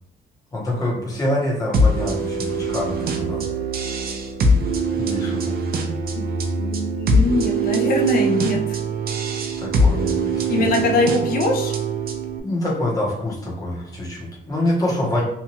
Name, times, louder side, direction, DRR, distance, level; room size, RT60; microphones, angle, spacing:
voice 1, 0.5-3.4 5.0-5.6 9.6-10.7 12.4-15.3, left 1 dB, 15° left, -4 dB, 0.8 m, -25 dB
sound 1, 1.7-12.4, right 2 dB, 50° right, 0.4 m, -22 dB
voice 2, 4.8-5.3 5.8-6.2 6.6-8.8 10.5-11.7, left 2 dB, 45° left, 1 dB, 0.5 m, -23 dB
2.7 x 2.3 x 2.9 m, 0.78 s
cardioid pair, 145°, 20 cm